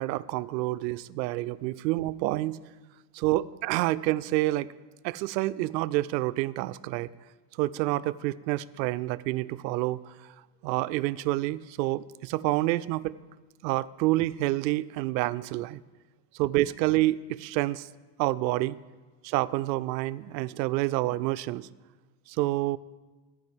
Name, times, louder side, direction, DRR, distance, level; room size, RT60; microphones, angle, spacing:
voice 1, 0.0-2.6 3.1-4.7 5.0-7.1 7.6-10.3 10.6-13.2 13.6-15.8 16.3-17.9 18.2-18.8 19.2-21.7 22.3-22.8, right 17 dB, 90° right, 15 dB, 0.6 m, -28 dB
14.0 x 5.0 x 7.7 m, 1.3 s
supercardioid pair, 155°, 50 cm